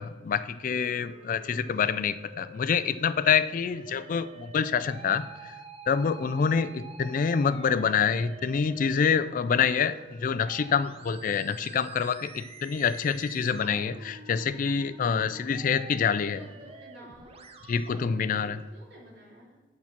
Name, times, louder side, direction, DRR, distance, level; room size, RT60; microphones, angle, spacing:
voice 1, 0.0-5.6 5.9-16.4 17.7-18.6, left 6 dB, 45° left, 14 dB, 0.3 m, -26 dB
Musical instrument, 0.7-18.6, right 3 dB, 35° right, 0.7 m, -48 dB
voice 2, 16.4-17.6 18.0-19.6, right 1 dB, 65° right, -4 dB, 3.1 m, -52 dB
6.7 x 5.9 x 7.2 m, 1.2 s
head